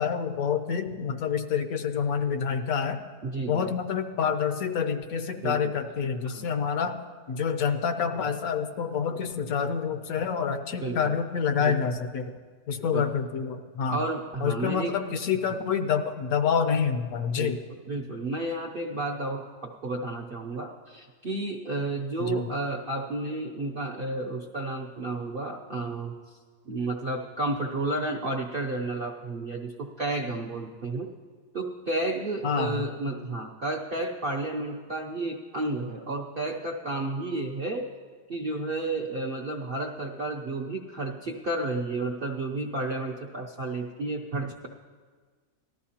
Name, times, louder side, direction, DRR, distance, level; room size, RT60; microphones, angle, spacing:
voice 1, 0.0-3.0 3.5-6.9 7.3-12.4 12.7-14.0 14.4-17.6 22.3-22.4 32.4-32.8, left 6 dB, 70° left, 8 dB, 1.1 m, -27 dB
voice 2, 3.2-3.7 5.4-5.7 6.2-6.5 10.8-11.2 11.6-11.9 12.9-13.0 13.9-15.0 15.5-15.6 17.3-17.6 17.9-26.4 26.7-31.1 31.5-37.9 38.3-44.7, right 2 dB, 55° right, -1 dB, 0.6 m, -32 dB
18.5 x 13.0 x 2.8 m, 1.5 s
omnidirectional pair, 1.7 m